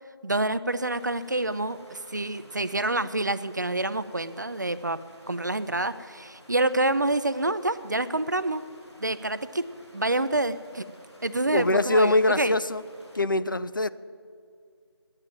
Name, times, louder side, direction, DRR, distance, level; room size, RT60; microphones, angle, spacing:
voice 1, 0.2-5.0 5.3-8.6 9.0-9.6 9.9-10.8 11.2-12.5, right 2 dB, 45° right, 13 dB, 0.5 m, -27 dB
sound 1, 0.7-13.2, equal, 90° left, 2.9 m, -54 dB
voice 2, 11.5-12.8 13.1-13.9, left 2 dB, 50° left, 14 dB, 0.4 m, -23 dB
10.5 x 8.9 x 9.0 m, 2.2 s
figure-of-eight pair, 165°, 14 cm